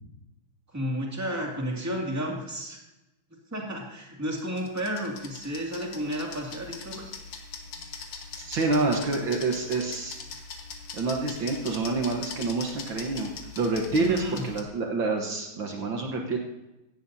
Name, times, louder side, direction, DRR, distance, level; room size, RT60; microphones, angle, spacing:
voice 1, 0.7-2.8 3.5-7.1 14.0-14.4, equal, 5° right, -1 dB, 2.1 m, -32 dB
sound 1, 4.4-14.6, left 5 dB, 80° left, 2.3 m, -41 dB
voice 2, 8.4-10.2 10.9-13.3 13.6-16.4, right 3 dB, 65° right, 1 dB, 1.9 m, -27 dB
17.0 x 14.0 x 2.7 m, 0.98 s
omnidirectional pair, 2.4 m